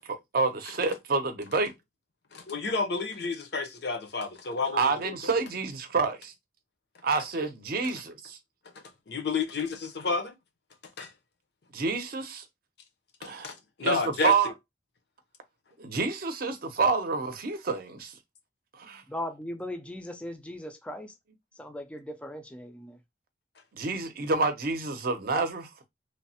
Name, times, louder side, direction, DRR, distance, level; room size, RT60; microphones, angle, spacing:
voice 1, 0.1-1.7 4.7-6.3 7.0-8.4 11.7-12.4 13.2-13.5 13.8-14.5 15.8-18.1 18.8-19.0 23.8-25.7, right 4 dB, 55° right, 0.6 m, -28 dB
voice 2, 2.3-5.2 7.8-7.9 9.1-10.3 11.0-11.1 13.2-14.5, left 4 dB, 60° left, 0.6 m, -31 dB
voice 3, 19.1-21.1 21.6-23.0, left 1 dB, 5° left, 0.3 m, -38 dB
3.1 x 2.0 x 2.7 m
head